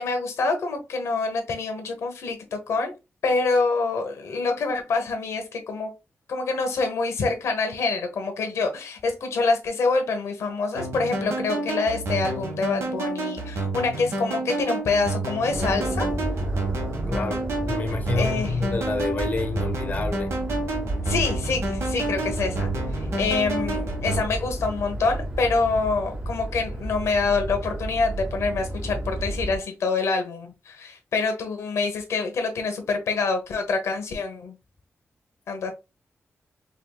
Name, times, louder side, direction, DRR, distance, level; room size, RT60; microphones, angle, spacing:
voice 1, 0.0-2.9 3.2-5.9 6.3-16.1 18.2-18.8 21.0-34.5 35.5-35.7, left 4 dB, 85° left, 1.1 m, -26 dB
sound 1, 10.8-24.2, right 2 dB, 75° right, 1.4 m, -30 dB
sound 2, 15.5-29.6, right 1 dB, 35° right, 1.8 m, -31 dB
voice 2, 17.1-20.3, left 3 dB, 35° left, 0.8 m, -28 dB
5.0 x 2.6 x 2.3 m
wide cardioid pair, 140°, 5 cm